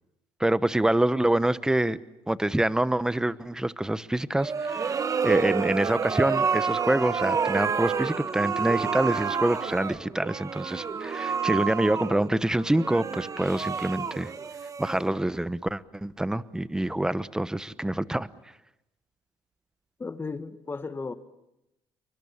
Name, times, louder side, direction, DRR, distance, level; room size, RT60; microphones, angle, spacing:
voice 1, 0.4-2.0 2.3-14.3 14.8-18.3, right 1 dB, 5° right, 15 dB, 1.0 m, -26 dB
sound 1, 4.4-15.4, right 6 dB, 35° right, 1.4 m, -29 dB
voice 2, 20.0-21.1, left 4 dB, 25° left, 10 dB, 1.8 m, -34 dB
29.0 x 24.0 x 7.2 m, 0.89 s
cardioid pair, 90°, 9 cm